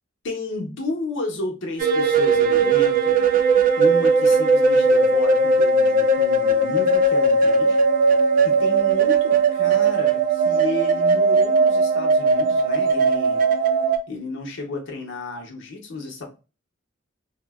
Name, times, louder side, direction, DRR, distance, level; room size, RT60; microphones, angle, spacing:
voice 1, 0.2-3.2 3.7-7.8 8.4-13.5 14.1-16.2, left 2 dB, 60° left, 0.7 m, -32 dB
sound 1, 1.8-14.0, right 3 dB, 40° right, 0.3 m, -18 dB
3.5 x 2.0 x 2.3 m
head